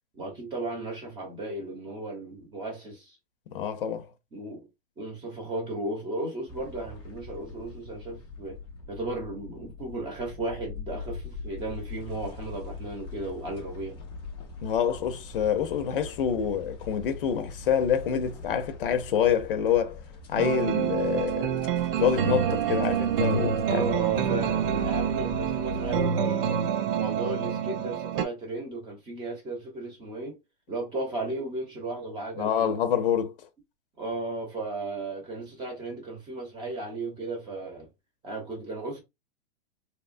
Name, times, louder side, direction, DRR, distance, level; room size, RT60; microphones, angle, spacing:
voice 1, 0.1-3.2 4.3-4.7 5.0-8.6 8.9-14.0 23.7-26.6 26.9-30.4 30.7-32.8 34.0-37.9 38.2-39.0, right 2 dB, 15° right, 0.8 m, -35 dB
voice 2, 3.5-4.1 14.6-20.0 20.3-21.5 22.0-23.8 32.4-33.3, left 8 dB, 65° left, 0.7 m, -26 dB
sound 1, 6.5-26.0, left 4 dB, 15° left, 0.5 m, -42 dB
sound 2, 20.4-28.3, right 8 dB, 65° right, 0.6 m, -27 dB
3.0 x 2.2 x 2.5 m
hypercardioid pair, 160°, 29 cm